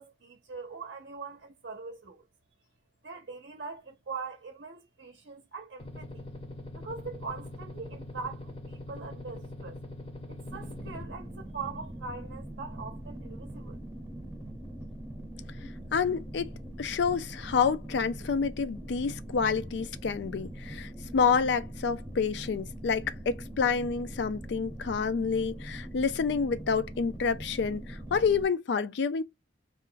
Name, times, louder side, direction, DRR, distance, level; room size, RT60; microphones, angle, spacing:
voice 1, 0.0-2.2 3.0-6.3 6.7-9.8 10.3-13.8, right 4 dB, 65° right, 0.6 m, -42 dB
sound 1, 5.8-11.0, left 1 dB, 30° left, 0.6 m, -42 dB
sound 2, 10.5-28.5, right 1 dB, 15° right, 0.7 m, -42 dB
voice 2, 15.9-16.5 16.8-29.2, left 5 dB, 65° left, 0.4 m, -28 dB
2.5 x 2.1 x 3.8 m
head